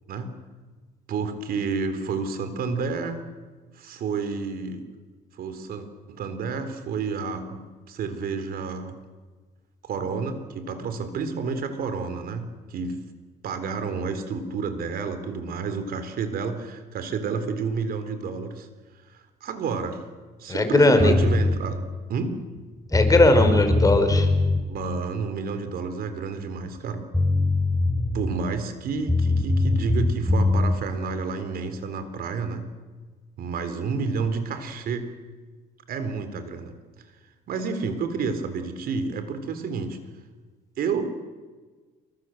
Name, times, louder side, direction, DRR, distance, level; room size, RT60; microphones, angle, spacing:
voice 1, 1.1-3.2 3.7-4.9 5.4-9.0 9.8-13.0 13.4-18.7 19.1-20.0 20.4-21.8 22.1-22.4 24.4-27.1 28.1-32.7 33.4-35.1 35.9-36.7 37.5-40.0 40.8-41.1, right 5 dB, 60° right, 9 dB, 3.9 m, -30 dB
voice 2, 20.5-21.1 22.9-24.3, left 2 dB, 20° left, 8 dB, 4.4 m, -18 dB
sound 1, 21.0-21.6 22.6-22.7 22.9-24.6 26.8-26.9 27.1-28.3 29.1-30.8, left 2 dB, 5° left, 4.6 m, -22 dB
28.0 x 24.0 x 7.9 m, 1.4 s
cardioid pair, 110°, 17 cm